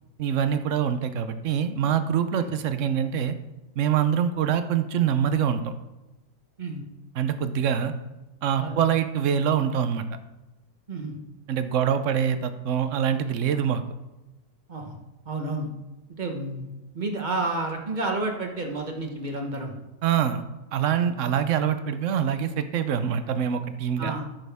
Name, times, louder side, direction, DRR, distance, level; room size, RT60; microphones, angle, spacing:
voice 1, 0.2-3.3 3.8-5.7 7.2-7.9 8.4-10.0 11.5-13.8 20.0-20.4 20.7-24.1, right 8 dB, 60° right, 10 dB, 0.8 m, -24 dB
voice 2, 15.2-15.7 16.2-19.8 21.2-21.3 24.0-24.2, right 2 dB, 30° right, 2 dB, 1.0 m, -30 dB
13.5 x 6.4 x 3.5 m, 1.0 s
omnidirectional pair, 1.9 m